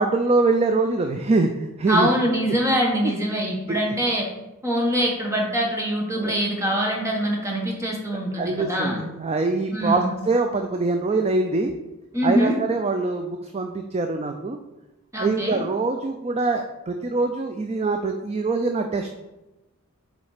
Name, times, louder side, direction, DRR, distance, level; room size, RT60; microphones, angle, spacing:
voice 1, 0.0-2.1 3.0-3.1 3.7-3.8 6.2-6.4 6.6-6.7 8.4-11.7 12.2-14.6 15.2-19.1, right 3 dB, 30° right, 5 dB, 0.4 m, -24 dB
voice 2, 1.9-4.3 4.6-9.0 9.7-10.1 12.1-12.6 15.1-15.6, equal, 15° right, -1 dB, 1.4 m, -24 dB
7.1 x 4.2 x 4.9 m, 1.0 s
head